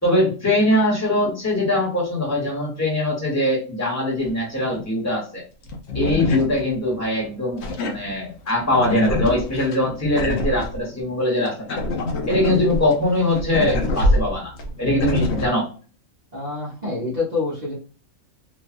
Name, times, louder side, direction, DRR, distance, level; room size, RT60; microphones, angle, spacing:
voice 1, 0.0-5.4 5.9-11.8 12.3-14.5 14.8-15.7, left 1 dB, 10° left, -4 dB, 1.3 m, -22 dB
sound 1, 4.2-4.3 5.7-7.1 7.6-10.8 11.5-15.5, left 2 dB, 60° left, 0.9 m, -25 dB
voice 2, 16.3-17.7, left 3 dB, 35° right, -8 dB, 1.0 m, -26 dB
3.1 x 2.4 x 2.5 m, 0.37 s
omnidirectional pair, 1.4 m